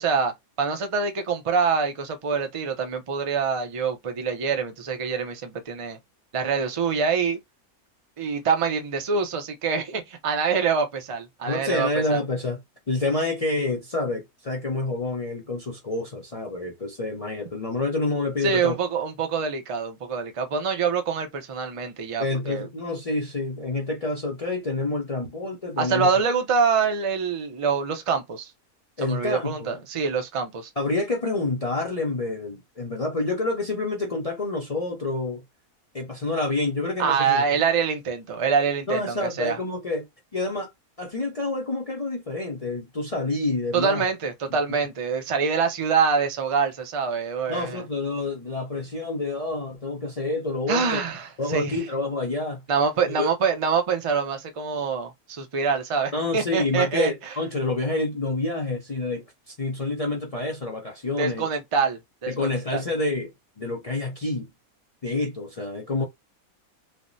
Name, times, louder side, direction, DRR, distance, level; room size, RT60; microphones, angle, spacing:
voice 1, 0.0-6.0 6.3-7.4 8.2-12.2 18.4-22.7 25.8-28.5 29.0-30.7 37.0-39.6 43.7-47.8 50.7-51.8 52.7-57.1 61.2-62.8, right 5 dB, 45° right, 0.4 m, -25 dB
voice 2, 11.4-12.6 12.9-18.8 22.2-26.1 29.0-29.8 30.8-35.4 35.9-37.4 38.9-40.1 40.3-40.7 41.0-44.0 44.5-44.6 47.5-51.0 51.4-52.6 53.2-53.3 56.1-61.5 62.3-63.3 63.6-64.5 65.0-66.0, left 2 dB, 50° left, 0.4 m, -28 dB
3.3 x 2.1 x 2.6 m
omnidirectional pair, 1.6 m